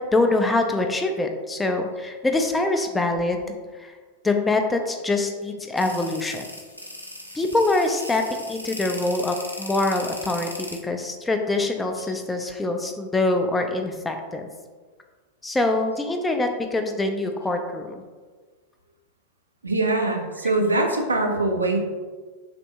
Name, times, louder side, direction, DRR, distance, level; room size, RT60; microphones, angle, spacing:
voice 1, 0.0-3.4 3.8-3.9 4.2-6.5 7.3-14.5 15.4-18.0, left 2 dB, 10° left, 4 dB, 0.3 m, -24 dB
sound 1, 5.8-10.8, left 1 dB, 85° left, 0.4 m, -38 dB
voice 2, 19.6-21.9, right 2 dB, 75° right, 2 dB, 0.4 m, -23 dB
3.3 x 2.5 x 2.7 m, 1.4 s
figure-of-eight pair, 90°, 0 cm